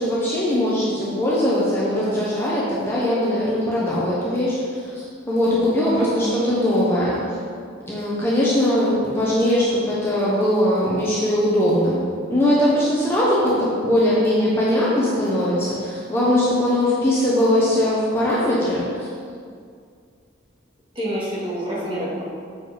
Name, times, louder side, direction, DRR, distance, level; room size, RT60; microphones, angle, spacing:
voice 1, 0.0-7.2 7.9-12.0 12.3-18.9, left 1 dB, 10° left, -8 dB, 1.1 m, -20 dB
voice 2, 5.8-6.4 21.0-22.2, right 1 dB, 25° right, -7 dB, 2.0 m, -27 dB
7.5 x 5.2 x 5.1 m, 2.2 s
head